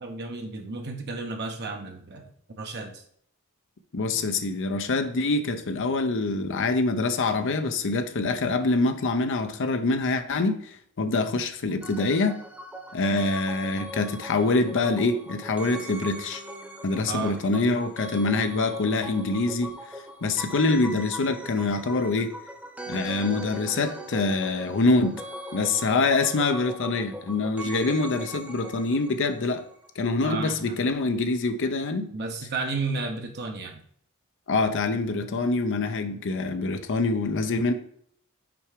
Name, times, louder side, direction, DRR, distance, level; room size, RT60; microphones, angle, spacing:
voice 1, 0.0-2.2 2.6-3.0 17.1-17.4 30.2-30.8 32.1-33.8, right 3 dB, 50° right, 3 dB, 0.8 m, -32 dB
voice 2, 3.9-12.4 12.9-16.4 16.8-19.7 20.2-22.3 22.9-25.2 25.5-29.6 30.0-32.1 34.5-37.7, left 3 dB, 60° left, 8 dB, 0.6 m, -25 dB
sound 1, 11.8-29.9 30.1-30.2, equal, 5° right, 0.9 m, -40 dB
6.0 x 4.7 x 4.9 m, 0.65 s
head